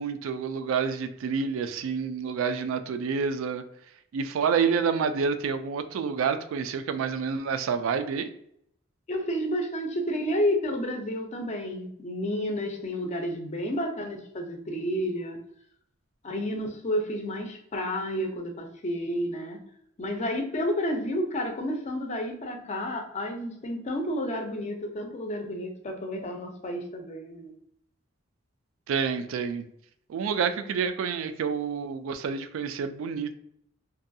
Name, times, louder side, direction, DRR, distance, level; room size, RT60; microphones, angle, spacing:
voice 1, 0.0-3.6 4.1-8.3 28.9-29.6 30.1-33.4, right 6 dB, 80° right, 10 dB, 0.3 m, -28 dB
voice 2, 9.1-15.4 16.2-19.6 20.0-27.5, equal, 35° left, 4 dB, 0.4 m, -31 dB
2.6 x 2.3 x 2.6 m, 0.72 s
head